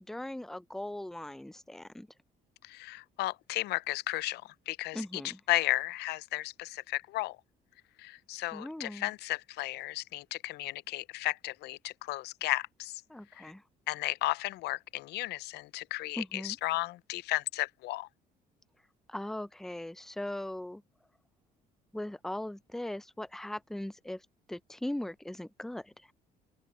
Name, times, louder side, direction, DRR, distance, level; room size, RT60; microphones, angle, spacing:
voice 1, 0.1-2.1 4.9-5.4 8.5-9.1 13.1-13.6 16.2-16.6 19.1-20.8 21.9-24.2 24.5-25.9, left 1 dB, ahead, 0.6 m, -39 dB
voice 2, 2.6-7.4 8.0-13.0 13.4-13.5 13.9-18.1, left 18 dB, 75° left, 0.5 m, -34 dB
open air
cardioid pair, 110°, 17 cm